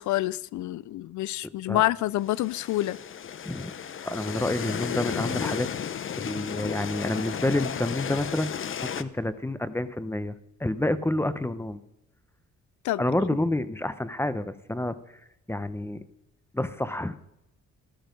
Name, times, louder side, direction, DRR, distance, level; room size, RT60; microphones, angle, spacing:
voice 1, 0.0-3.0 12.8-13.0, left 15 dB, 70° left, 0.5 m, -27 dB
sound 1, 2.2-9.0, left 8 dB, 45° left, 0.8 m, -34 dB
voice 2, 4.0-5.7 6.2-11.8 13.0-15.0 15.5-16.0 16.5-17.2, left 1 dB, 10° left, 0.8 m, -29 dB
14.0 x 12.5 x 5.3 m
cardioid pair, 90°, 30 cm